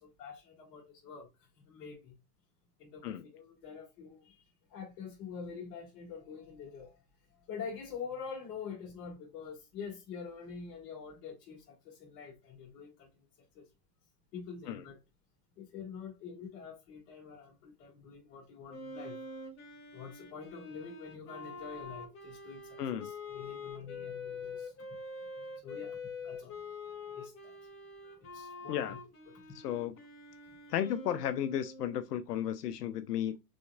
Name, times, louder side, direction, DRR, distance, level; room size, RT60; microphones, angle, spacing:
voice 1, 0.0-1.3 1.7-2.1 2.8-4.3 4.7-7.0 7.5-13.1 13.6-13.7 14.3-15.0 15.6-19.2 19.9-22.6 22.9-24.7 25.6-26.0 26.2-26.5 27.1-27.5 28.0-29.0, left 6 dB, 45° left, 1.9 m, -46 dB
Wind instrument woodwind instrument, 18.7-32.1, left 3 dB, 25° left, 1.7 m, -45 dB
voice 2, 22.8-23.1 28.7-29.0 29.5-29.9 30.7-33.4, left 10 dB, 80° left, 0.6 m, -34 dB
5.2 x 3.5 x 2.2 m
hypercardioid pair, 120°, 47 cm